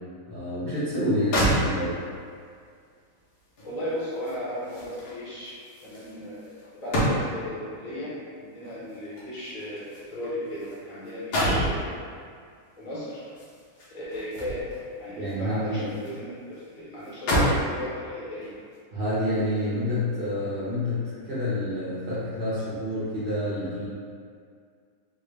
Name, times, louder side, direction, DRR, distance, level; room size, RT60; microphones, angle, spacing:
voice 1, 0.3-1.9 15.1-15.8 18.9-23.9, left 1 dB, 75° right, -10 dB, 0.5 m, -28 dB
sound 1, 1.0-1.1 1.3-2.2 3.6-7.6 8.6-10.8 11.1-11.8 13.3-14.9 15.3-16.2 16.5-16.6 17.0-17.7 18.4-18.6, equal, 60° left, 1.2 m, -29 dB
voice 2, 3.6-6.5 6.8-12.0 12.8-13.2 13.9-14.7 15.0-18.6, left 1 dB, 75° left, -9 dB, 0.3 m, -36 dB
3.8 x 2.2 x 3.3 m, 2.1 s
omnidirectional pair, 2.3 m